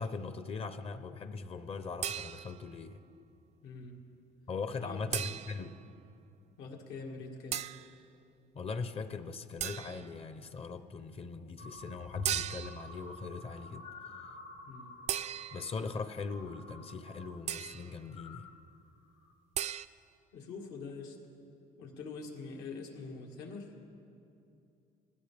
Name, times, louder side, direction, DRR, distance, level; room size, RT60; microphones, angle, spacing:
voice 1, 0.0-3.0 4.5-5.8 8.5-13.9 15.5-18.5, left 4 dB, 35° left, 10 dB, 0.7 m, -40 dB
sound 1, 2.0-2.7 5.1-5.8 7.5-7.9 9.6-10.2 12.2-12.9 15.1-15.8 17.5-17.9 19.5-19.9, right 10 dB, 40° right, 0.4 m, -37 dB
voice 2, 3.6-4.0 4.8-5.3 6.6-7.6 14.6-14.9 20.3-21.2 21.8-23.7, left 4 dB, 85° left, 0 dB, 2.1 m, -44 dB
sound 2, 11.6-17.4 17.7-18.5 19.0-19.3, left 3 dB, 50° left, 1.2 m, -48 dB
19.5 x 16.0 x 3.4 m, 2.6 s
cardioid pair, 110°, 17 cm